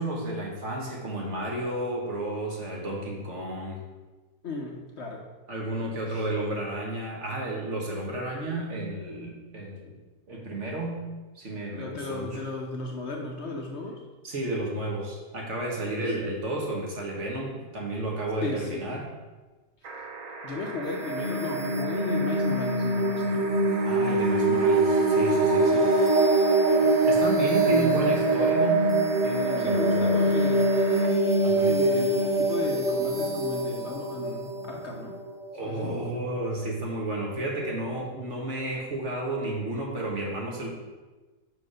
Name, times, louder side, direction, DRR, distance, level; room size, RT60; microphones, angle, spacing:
voice 1, 0.0-3.8 5.5-9.9 10.3-11.0 11.3-12.4 14.2-19.1 23.8-25.7 27.0-30.2 31.4-31.8 35.5-40.7, right 1 dB, 50° right, -2 dB, 1.6 m, -32 dB
voice 2, 4.4-5.2 6.1-6.2 11.7-14.0 18.4-18.8 20.4-23.5 25.6-25.9 27.6-28.4 29.6-30.8 31.6-35.1 35.6-36.2, left 2 dB, 55° left, 0 dB, 0.9 m, -35 dB
sound 1, 19.8-31.1 32.5-32.6, right 3 dB, 70° right, 1.5 m, -40 dB
sound 2, 20.9-35.5, right 2 dB, 30° right, 1.1 m, -23 dB
5.2 x 4.8 x 6.2 m, 1.3 s
omnidirectional pair, 1.7 m